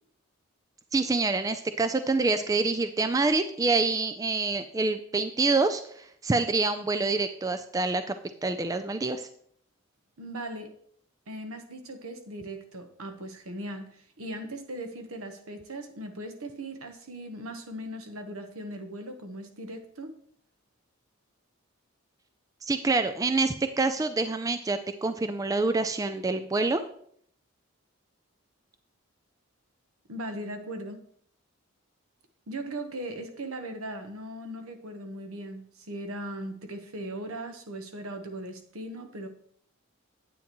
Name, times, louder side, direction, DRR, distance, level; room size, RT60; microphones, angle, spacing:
voice 1, 0.9-8.1 8.4-9.3 22.6-26.8, right 3 dB, 15° right, 9 dB, 0.3 m, -26 dB
voice 2, 10.2-10.7 11.3-20.1 30.1-31.0 32.5-39.3, right 1 dB, 80° right, 7 dB, 1.1 m, -38 dB
9.4 x 8.7 x 3.0 m, 0.65 s
head